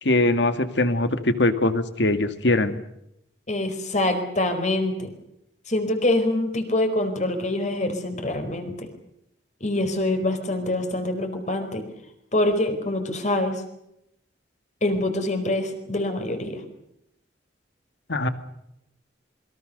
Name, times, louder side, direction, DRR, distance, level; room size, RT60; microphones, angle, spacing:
voice 1, 0.0-2.8 18.1-18.3, left 2 dB, 65° left, 10 dB, 2.1 m, -22 dB
voice 2, 3.5-5.1 5.7-8.9 9.6-11.8 12.3-13.6 14.8-16.6, left 1 dB, 40° left, 7 dB, 4.6 m, -25 dB
27.5 x 23.0 x 6.7 m, 0.81 s
head